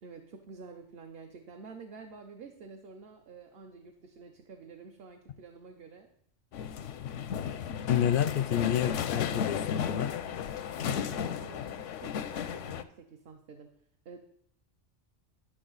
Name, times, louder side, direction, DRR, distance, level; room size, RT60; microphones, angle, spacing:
voice 1, 0.0-6.1 11.0-13.8 14.0-14.2, right 5 dB, 55° right, 4 dB, 0.9 m, -49 dB
sound 1, 6.5-12.8, left 8 dB, 85° left, 0.9 m, -34 dB
voice 2, 7.9-10.1, left 9 dB, 60° left, 13 dB, 0.6 m, -28 dB
11.5 x 6.4 x 3.9 m, 0.70 s
omnidirectional pair, 1.3 m